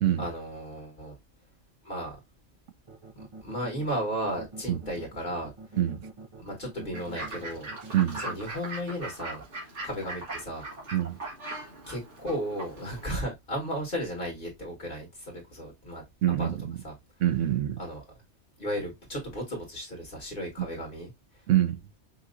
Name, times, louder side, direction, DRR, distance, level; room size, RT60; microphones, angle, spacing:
voice 1, 0.2-1.1 1.8-2.2 3.2-5.5 6.4-7.7 8.2-9.4 9.8-10.6 11.9-16.0 16.4-16.5 16.8-16.9 17.8-18.0 18.6-21.1, equal, 45° left, 1.9 m, -34 dB
sound 1, 2.9-8.4, right 3 dB, 30° right, 0.7 m, -45 dB
voice 2, 5.8-6.1 7.9-8.2 10.9-11.2 16.2-16.8 17.2-17.8 21.5-21.8, right 12 dB, 90° right, 1.0 m, -25 dB
Fowl / Bird, 6.9-13.1, right 2 dB, 70° right, 2.3 m, -40 dB
5.5 x 2.8 x 2.5 m
omnidirectional pair, 1.2 m